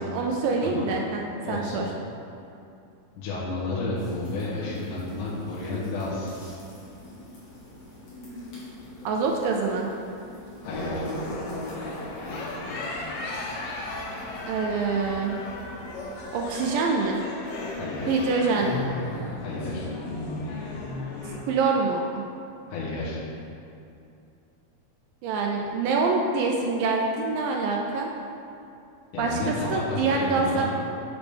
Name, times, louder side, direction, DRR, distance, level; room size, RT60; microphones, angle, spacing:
voice 1, 0.1-1.2 1.5-1.9 9.1-9.9 14.5-15.4 16.3-17.2 18.1-18.8 21.5-22.2 25.2-28.1 29.2-30.6, right 4 dB, 80° right, 0 dB, 2.1 m, -25 dB
voice 2, 1.4-1.9 3.2-6.3 10.6-11.1 17.8-18.3 19.4-19.9 22.7-23.2 29.1-30.7, left 2 dB, 70° left, -8 dB, 2.5 m, -31 dB
sound 1, 4.0-16.7, left 1 dB, 50° left, 2.1 m, -46 dB
sound 2, 10.6-21.4, left 2 dB, 90° left, 2.9 m, -34 dB
7.0 x 5.9 x 3.4 m, 2.7 s
omnidirectional pair, 4.3 m